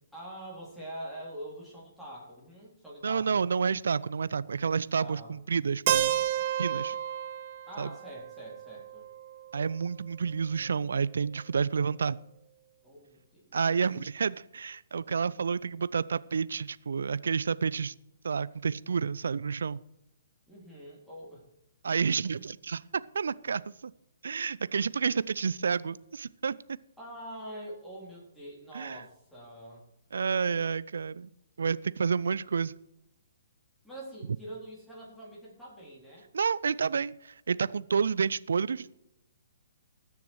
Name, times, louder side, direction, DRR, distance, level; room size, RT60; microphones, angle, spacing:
voice 1, 0.1-3.4 4.9-5.4 7.7-9.1 12.8-13.6 20.5-21.4 27.0-29.8 33.8-36.3, right 1 dB, ahead, -7 dB, 3.8 m, -45 dB
voice 2, 3.0-6.1 6.6-7.0 7.8-7.9 9.5-12.2 13.5-17.9 18.2-19.8 21.8-22.8 23.1-23.9 24.2-26.6 28.7-29.0 30.1-31.3 31.6-32.7 36.3-38.9, right 6 dB, 65° right, 18 dB, 0.4 m, -29 dB
Keyboard (musical), 5.9-9.8, right 11 dB, 45° right, 0.8 m, -31 dB
19.5 x 6.9 x 4.7 m, 0.82 s
figure-of-eight pair, 125°, 0 cm